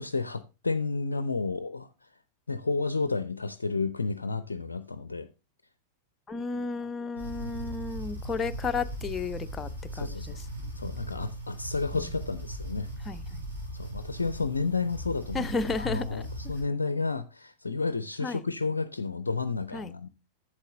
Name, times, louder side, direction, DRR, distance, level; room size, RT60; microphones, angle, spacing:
voice 1, 0.0-1.9 2.5-5.3 7.4-7.5 9.9-10.5 10.8-12.9 13.7-15.5 15.8-20.1, left 4 dB, 75° left, 0.4 m, -31 dB
voice 2, 6.3-9.7 10.0-10.7 11.9-12.0 13.1-13.4 15.3-16.2 18.2-18.4 19.7-19.9, left 4 dB, 20° left, 0.6 m, -33 dB
sound 1, 7.2-16.6, right 1 dB, 80° right, 5.3 m, -39 dB
8.2 x 7.3 x 3.8 m
figure-of-eight pair, 90°, 0 cm